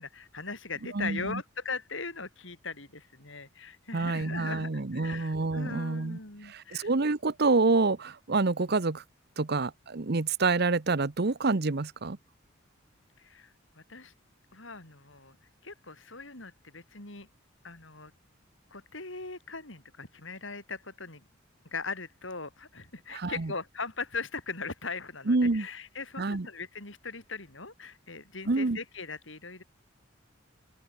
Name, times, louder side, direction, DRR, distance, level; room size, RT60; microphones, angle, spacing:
voice 1, 0.0-6.9 13.2-13.5 13.8-14.1 14.5-15.4 15.6-17.3 17.6-18.1 18.7-21.2 21.7-29.6, left 4 dB, 65° left, 6.1 m, -40 dB
voice 2, 0.9-1.4 3.9-6.2 6.5-9.0 9.4-12.2 23.1-23.5 25.3-25.7 26.2-26.5 28.5-28.8, right 3 dB, 50° right, 0.9 m, -27 dB
open air
head